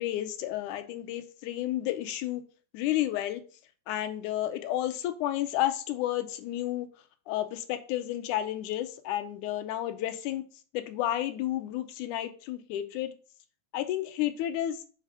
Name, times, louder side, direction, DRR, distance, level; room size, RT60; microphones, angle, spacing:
voice 1, 0.0-2.4 2.7-3.4 3.9-6.9 7.3-10.4 10.7-13.1 13.7-14.8, left 13 dB, 85° left, 10 dB, 2.2 m, -31 dB
6.5 x 3.5 x 5.8 m, 0.38 s
omnidirectional pair, 3.5 m